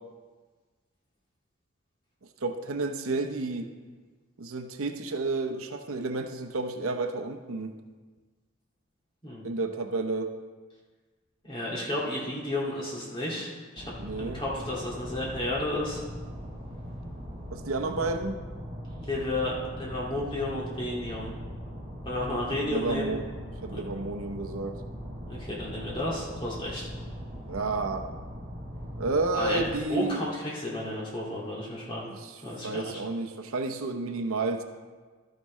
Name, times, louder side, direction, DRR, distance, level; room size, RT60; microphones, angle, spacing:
voice 1, 2.4-3.7 4.4-7.8 9.4-10.4 14.0-14.4 17.5-18.4 22.6-23.2 23.6-24.8 27.5-28.1 29.0-30.2 32.1-34.6, right 3 dB, 75° right, 5 dB, 0.7 m, -31 dB
voice 2, 11.4-16.0 18.0-18.1 19.0-21.3 22.0-23.1 23.7-24.0 25.3-26.9 29.3-29.6 29.9-32.1 32.4-33.0, left 1 dB, 25° left, -5 dB, 2.2 m, -32 dB
sound 1, 13.8-29.8, equal, 20° right, 3.1 m, -40 dB
13.0 x 9.1 x 3.1 m, 1.4 s
head